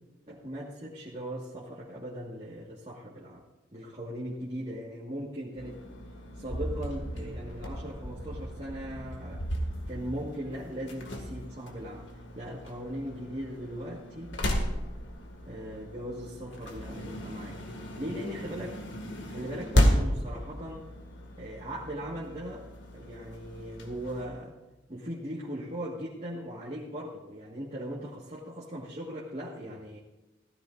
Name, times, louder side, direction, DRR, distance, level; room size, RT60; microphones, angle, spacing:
voice 1, 0.3-3.4 3.7-5.8 6.4-9.5 9.9-14.4 15.4-17.6 18.0-18.8 19.3-20.9 21.4-22.7 22.9-24.6 24.9-30.0, equal, 30° right, -5 dB, 1.6 m, -39 dB
sound 1, 5.6-24.3, equal, 75° left, 2.0 m, -34 dB
16.0 x 14.0 x 2.5 m, 1.1 s
head